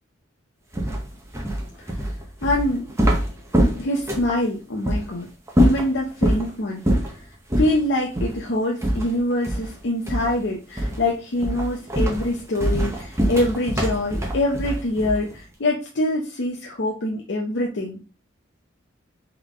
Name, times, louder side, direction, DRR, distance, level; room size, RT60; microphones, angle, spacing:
sound 1, 0.7-4.4 4.8-5.0 5.5-6.5 6.8-7.2 7.5-7.7 8.1-8.4 8.8-9.8 10.1-10.4 10.8-11.1 11.4-15.3, right 1 dB, 15° right, 0.8 m, -23 dB
voice 1, 2.4-2.9 3.8-5.3 5.6-6.9 7.6-18.0, left 1 dB, 60° left, -1 dB, 0.7 m, -24 dB
3.8 x 3.4 x 3.5 m, 0.32 s
head